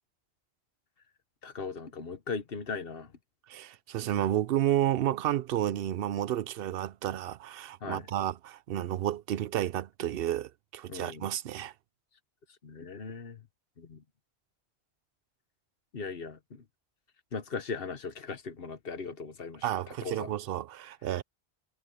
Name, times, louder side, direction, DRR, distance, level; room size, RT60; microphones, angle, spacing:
voice 1, 1.4-3.1 7.8-8.0 10.9-11.3 12.6-13.4 13.8-14.0 15.9-16.6 17.3-19.6 20.0-20.3, left 5 dB, 60° left, 1.3 m, -38 dB
voice 2, 3.5-11.7 19.6-21.2, right 12 dB, 70° right, 0.7 m, -31 dB
omnidirectional pair, 1.1 m